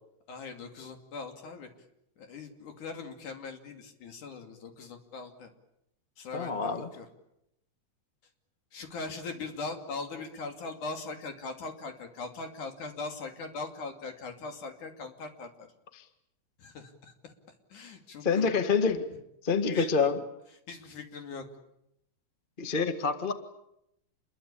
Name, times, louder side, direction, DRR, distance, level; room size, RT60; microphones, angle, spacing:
voice 1, 0.3-1.7 2.2-5.5 6.2-7.1 8.7-15.5 16.6-17.3 17.7-18.5 19.7-20.1 20.7-21.5, left 4 dB, 60° left, 5 dB, 4.0 m, -40 dB
voice 2, 6.3-6.9 15.9-16.0 18.2-19.1 19.4-20.2 22.6-23.3, left 5 dB, 40° left, 8 dB, 0.7 m, -27 dB
28.5 x 22.0 x 8.6 m, 0.81 s
omnidirectional pair, 4.2 m